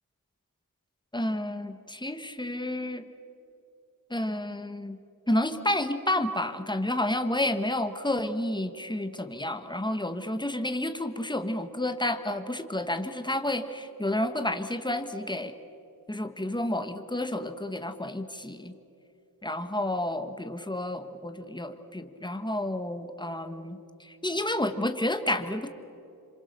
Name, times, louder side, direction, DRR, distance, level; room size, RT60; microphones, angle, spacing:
voice 1, 1.1-3.1 4.1-5.0 5.3-15.5 16.1-18.7 19.4-25.7, left 1 dB, 10° left, 8 dB, 1.6 m, -30 dB
28.5 x 26.0 x 6.8 m, 2.8 s
wide cardioid pair, 65°, 36 cm